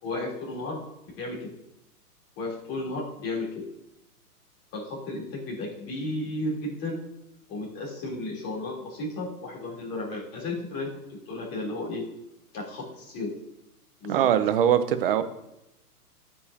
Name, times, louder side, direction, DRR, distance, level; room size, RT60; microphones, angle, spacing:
voice 1, 0.0-0.8 1.2-1.5 2.4-3.5 4.7-7.0 7.5-12.0 12.5-13.3 14.0-14.3, left 2 dB, 30° left, -4 dB, 3.4 m, -33 dB
voice 2, 14.1-15.2, right 10 dB, 40° right, 11 dB, 0.7 m, -22 dB
14.0 x 5.5 x 2.8 m, 0.87 s
hypercardioid pair, 130°, 46 cm